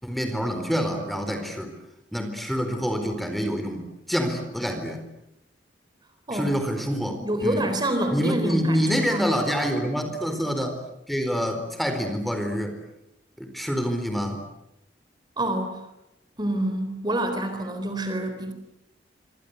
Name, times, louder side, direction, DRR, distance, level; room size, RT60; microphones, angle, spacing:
voice 1, 0.0-1.7 2.1-5.0 6.3-7.7 8.1-10.8 11.1-12.7 13.4-14.4, equal, ahead, 6 dB, 4.2 m, -26 dB
voice 2, 7.0-9.2 15.4-15.8 16.4-18.5, right 1 dB, 25° right, 7 dB, 3.9 m, -27 dB
27.0 x 26.5 x 8.2 m, 0.88 s
head